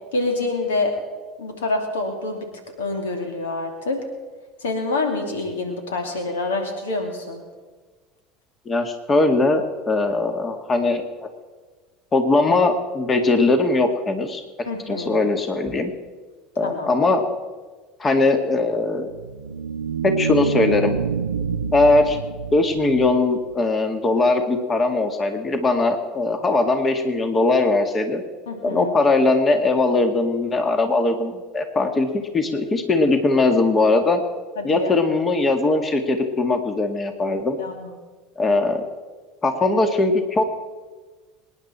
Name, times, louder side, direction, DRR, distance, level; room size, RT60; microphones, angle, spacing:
voice 1, 0.1-0.9 1.4-2.5 2.8-4.0 4.6-7.4 14.7-15.2 16.6-17.1 28.5-28.9 34.6-34.9 37.6-38.0, left 2 dB, 80° left, 4 dB, 2.5 m, -26 dB
voice 2, 8.7-11.3 12.1-14.4 14.9-15.9 16.6-17.3 18.0-19.1 20.0-20.9 21.7-22.2 22.5-28.2 28.6-32.1 32.3-34.2 34.6-37.6 38.4-38.9 39.4-40.4, left 2 dB, 30° left, 6 dB, 2.0 m, -20 dB
sound 1, 19.0-23.5, right 6 dB, 90° right, 0.5 m, -27 dB
25.5 x 10.5 x 4.4 m, 1.4 s
hypercardioid pair, 75°, 0 cm